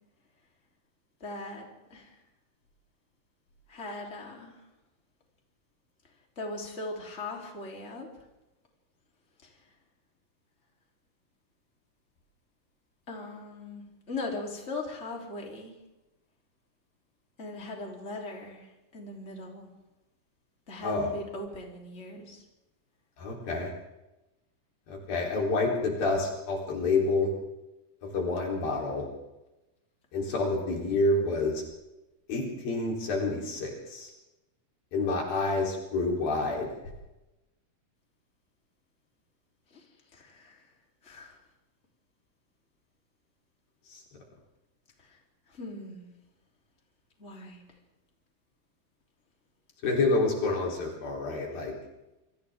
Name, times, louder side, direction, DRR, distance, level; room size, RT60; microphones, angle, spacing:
voice 1, 1.2-2.1 3.7-4.6 6.4-8.1 9.4-9.5 13.1-15.7 17.4-18.7 18.9-19.7 20.7-22.4 39.7-39.8 40.1-40.6 41.0-41.4 45.0-45.2 45.5-46.1 47.2-47.6, left 2 dB, 20° left, 0 dB, 3.6 m, -39 dB
voice 2, 23.2-23.7 24.9-27.3 28.0-29.0 30.1-31.6 32.3-34.1 34.9-36.7 43.9-44.0 49.8-51.7, left 3 dB, 80° left, -1 dB, 5.7 m, -28 dB
28.5 x 24.5 x 3.7 m, 0.99 s
omnidirectional pair, 4.1 m